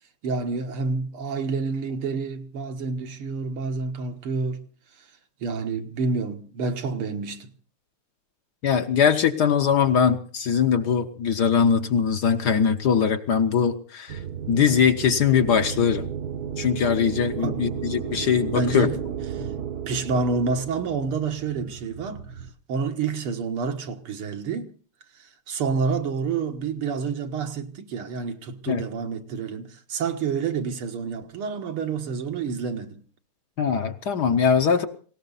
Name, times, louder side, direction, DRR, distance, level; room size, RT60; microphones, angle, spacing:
voice 1, 0.2-4.6 5.4-7.5 17.4-17.7 18.1-19.5 19.9-22.3 22.7-24.7 25.5-33.0, right 4 dB, 80° right, 2.4 m, -28 dB
voice 2, 8.6-14.2 14.5-16.0 16.6-18.9 28.7-28.8 33.6-34.9, left 7 dB, 55° left, 1.4 m, -21 dB
sound 1, 14.1-22.5, right 8 dB, 55° right, 1.3 m, -34 dB
19.5 x 18.0 x 4.1 m
omnidirectional pair, 2.4 m